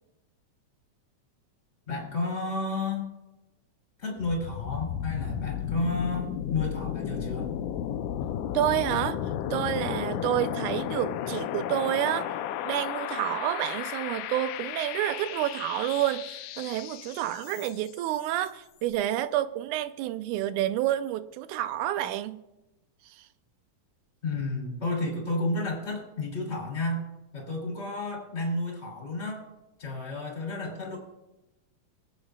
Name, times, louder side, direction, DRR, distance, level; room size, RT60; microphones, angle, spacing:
voice 1, 1.9-3.1 4.0-7.6 24.2-27.0 27.3-29.4 29.8-31.0, left 2 dB, 20° left, 2.9 m, -31 dB
sound 1, 4.2-18.0, left 10 dB, 90° left, 2.1 m, -34 dB
voice 2, 8.5-9.2 9.5-12.3 12.6-22.4 23.2-23.3, right 13 dB, 85° right, 2.1 m, -29 dB
22.5 x 8.7 x 2.3 m
omnidirectional pair, 3.5 m